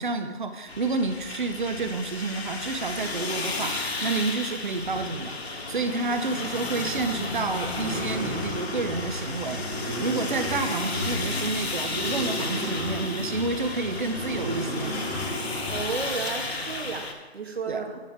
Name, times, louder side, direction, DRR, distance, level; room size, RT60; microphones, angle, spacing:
voice 1, 0.0-14.9 17.7-17.8, right 3 dB, 45° right, 8 dB, 1.0 m, -30 dB
sound 1, 0.7-17.1, left 3 dB, 70° left, 1.6 m, -33 dB
sound 2, 6.9-16.0, left 1 dB, 5° right, 1.2 m, -35 dB
voice 2, 15.7-18.0, right 4 dB, 65° right, 3 dB, 1.9 m, -33 dB
9.9 x 9.4 x 3.6 m, 1.3 s
figure-of-eight pair, 165°, 33 cm